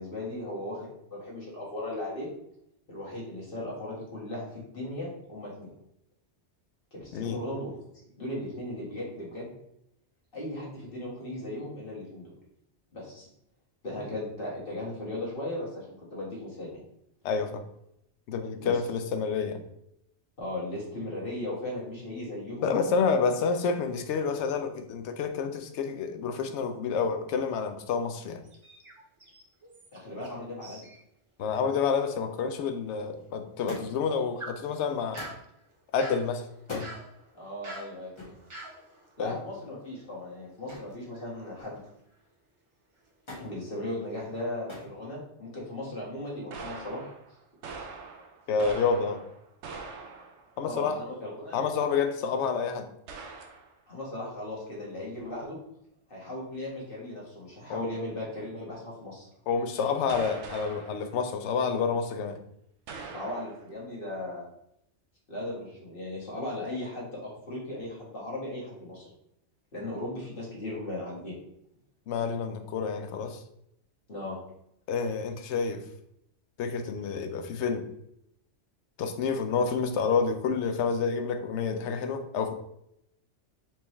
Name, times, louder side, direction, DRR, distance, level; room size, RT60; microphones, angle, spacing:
voice 1, 0.0-2.3 2.9-5.7 6.9-7.8 8.2-9.5 10.3-12.3 12.9-13.3 13.8-16.8 18.6-18.8 20.4-22.7 29.9-30.9 37.3-38.1 39.2-41.8 43.4-47.0 50.6-51.6 53.9-55.6 56.1-59.3 63.1-64.4 65.3-69.1 69.7-71.4 74.1-74.4, left 1 dB, 50° left, -5 dB, 1.6 m, -37 dB
voice 2, 17.2-17.6 18.3-19.6 22.6-28.4 31.4-35.2 35.9-36.9 39.2-39.4 48.5-49.2 50.6-51.0 51.5-52.9 57.7-57.9 59.5-62.4 72.1-73.4 74.9-75.8 76.6-77.9 79.0-82.5, left 5 dB, 80° left, 7 dB, 0.9 m, -29 dB
sound 1, 28.4-30.4 30.6-31.0 31.4-31.5 32.1-32.2 33.8-40.5 40.9-42.4 43.0-43.2 43.7-44.4, right 1 dB, 30° right, 0.7 m, -48 dB
Thump thud, 33.7-34.1 35.2-35.5 36.6-36.9 38.2-38.4 40.7-41.0 41.4-41.9 43.3-43.5 44.7-45.0 45.9-46.4 47.4-47.5, left 2 dB, 25° left, 1.4 m, -43 dB
sound 2, 46.5-50.6 52.3-52.4 53.1-53.7 60.1-61.1 62.9-63.7, right 4 dB, 85° right, 0.9 m, -43 dB
4.5 x 3.4 x 3.0 m, 0.77 s
omnidirectional pair, 1.2 m